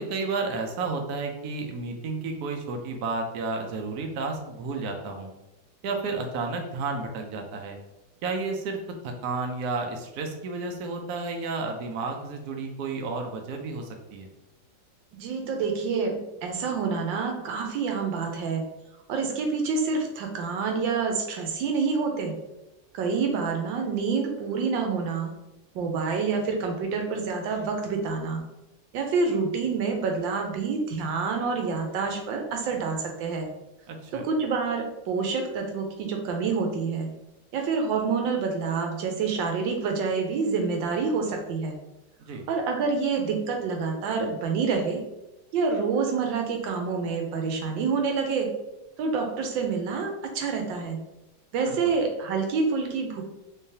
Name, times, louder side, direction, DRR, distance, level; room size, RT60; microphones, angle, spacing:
voice 1, 0.0-5.3 5.8-7.8 8.2-8.8 9.0-14.3 33.9-34.3 42.3-42.4 51.7-51.8, right 3 dB, 65° right, 3 dB, 1.0 m, -32 dB
voice 2, 15.1-18.6 19.1-22.3 22.9-25.3 25.7-28.4 28.9-33.5 34.1-37.1 37.5-41.8 42.5-45.0 45.5-48.5 49.0-51.0 51.5-53.2, right 5 dB, 85° right, 3 dB, 1.4 m, -27 dB
3.8 x 3.2 x 2.7 m, 0.93 s
omnidirectional pair, 2.0 m